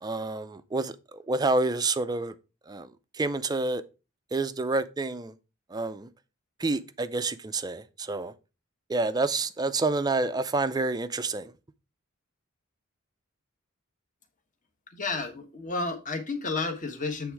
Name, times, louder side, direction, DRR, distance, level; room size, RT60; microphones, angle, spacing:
voice 1, 0.0-2.3 2.7-3.8 4.3-5.3 5.7-6.1 6.6-8.3 8.9-11.5, right 3 dB, 20° right, 0.4 m, -28 dB
voice 2, 14.9-17.3, left 3 dB, 40° left, 1.1 m, -32 dB
8.1 x 3.4 x 4.6 m
head